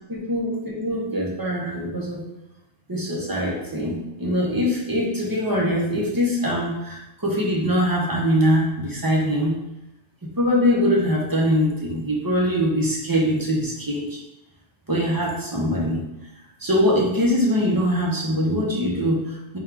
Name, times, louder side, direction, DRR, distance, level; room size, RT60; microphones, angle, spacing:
voice 1, 0.1-2.2 2.9-9.5 10.4-14.2 14.9-16.0 16.6-19.6, equal, 25° right, -3 dB, 0.6 m, -22 dB
3.7 x 2.3 x 4.4 m, 0.89 s
omnidirectional pair, 1.3 m